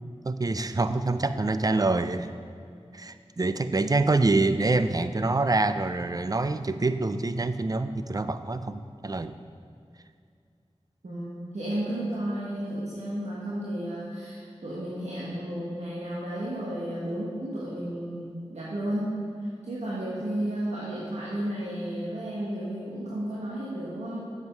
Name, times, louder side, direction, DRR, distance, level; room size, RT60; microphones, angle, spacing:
voice 1, 0.2-2.3 2.9-9.3, right 3 dB, 35° right, 11 dB, 0.5 m, -26 dB
voice 2, 11.0-24.3, right 1 dB, 85° right, -7 dB, 1.5 m, -33 dB
7.9 x 7.4 x 5.3 m, 2.3 s
cardioid pair, 40°, 11 cm